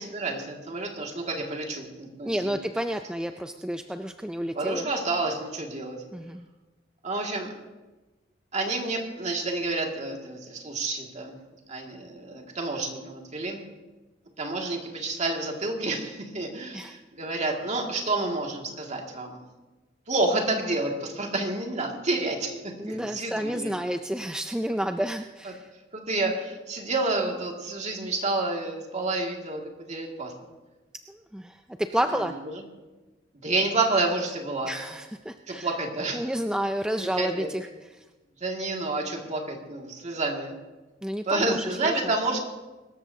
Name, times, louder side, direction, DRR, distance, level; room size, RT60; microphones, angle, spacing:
voice 1, 0.0-2.5 4.6-6.0 7.0-7.5 8.5-11.4 11.7-13.6 14.4-19.4 20.1-22.6 22.9-23.7 25.9-30.3 32.1-32.6 33.4-34.7 35.5-36.3 37.0-37.5 38.4-40.6 41.3-42.4, right 2 dB, 40° right, 0 dB, 2.2 m, -29 dB
voice 2, 2.2-4.8 6.1-6.5 16.7-17.0 22.8-25.7 31.1-32.3 34.7-35.7 36.1-37.7 37.9-38.0 41.0-42.1, equal, 5° right, 6 dB, 0.4 m, -30 dB
24.0 x 13.5 x 2.8 m, 1.2 s
head